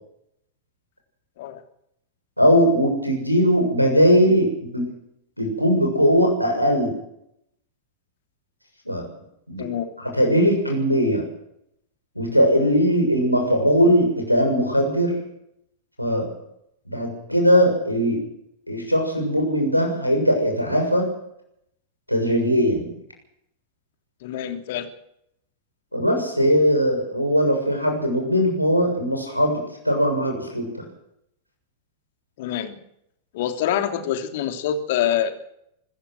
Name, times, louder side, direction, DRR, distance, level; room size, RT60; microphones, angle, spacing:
voice 1, 2.4-4.9 5.4-6.9 8.9-9.1 9.5-9.7 10.1-11.2 12.2-15.2 16.0-16.3 16.9-18.2 18.7-21.1 22.1-22.9 25.9-30.8, equal, 90° left, 1 dB, 6.9 m, -20 dB
voice 2, 24.2-24.9 32.4-32.8 33.3-35.3, left 10 dB, 55° left, 6 dB, 3.2 m, -25 dB
25.0 x 15.0 x 7.9 m, 0.75 s
figure-of-eight pair, 90°, 0 cm